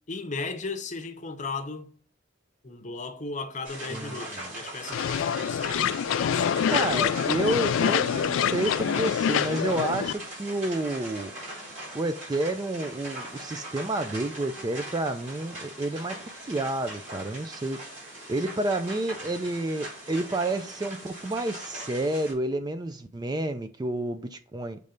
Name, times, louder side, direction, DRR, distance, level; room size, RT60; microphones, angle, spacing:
voice 1, 0.1-1.9 2.6-5.9 6.2-6.7, left 3 dB, 40° left, 0.7 m, -36 dB
sound 1, 3.6-22.3, right 1 dB, 40° right, 3.6 m, -40 dB
voice 2, 3.9-4.5 6.7-11.3 11.9-17.8 18.3-24.8, right 1 dB, 20° right, 0.3 m, -30 dB
sound 2, 4.9-10.1, left 8 dB, 85° left, 0.3 m, -26 dB
6.8 x 3.2 x 5.1 m
head